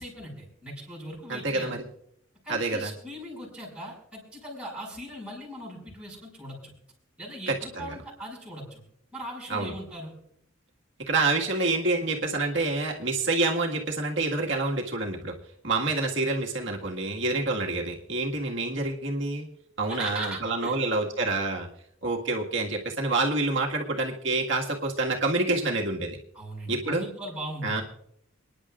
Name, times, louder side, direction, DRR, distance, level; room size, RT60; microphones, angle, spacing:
voice 1, 0.0-1.8 2.4-6.7 7.2-8.8 9.1-10.1 18.5-18.6 19.9-20.8 26.3-27.8, right 1 dB, 5° right, -4 dB, 5.7 m, -39 dB
voice 2, 1.3-1.8 2.5-2.9 7.5-7.9 9.5-9.7 11.1-15.3 15.6-19.5 19.8-21.7 22.0-26.2 26.7-27.1 27.6-27.8, right 3 dB, 60° right, 0 dB, 1.8 m, -27 dB
29.0 x 10.5 x 2.5 m, 0.70 s
head